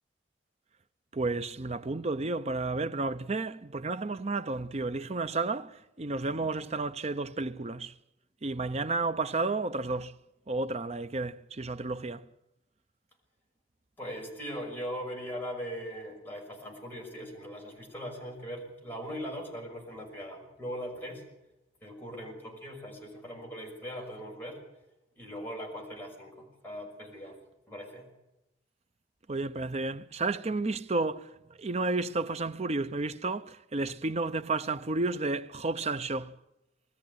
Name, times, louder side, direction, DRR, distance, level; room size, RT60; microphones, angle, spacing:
voice 1, 1.1-7.9 8.4-10.2 10.5-12.3 29.3-36.4, right 3 dB, 35° right, 0.7 m, -32 dB
voice 2, 14.0-21.2 21.8-24.6 25.2-27.3 27.7-28.1, equal, 10° left, 6.0 m, -40 dB
21.5 x 13.5 x 9.5 m
head